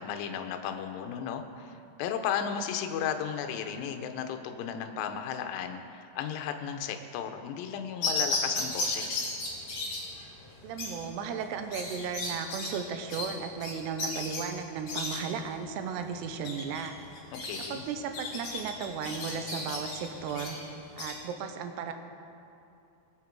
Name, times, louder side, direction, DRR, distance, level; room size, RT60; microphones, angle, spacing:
voice 1, 0.0-9.3 17.4-17.8, left 8 dB, 75° left, 6 dB, 2.2 m, -34 dB
sound 1, 8.0-21.1, left 2 dB, 40° left, 2.8 m, -35 dB
voice 2, 10.6-17.0 17.7-20.6 21.0-21.9, right 6 dB, 90° right, 7 dB, 2.9 m, -35 dB
20.5 x 7.4 x 4.6 m, 2.7 s
omnidirectional pair, 4.8 m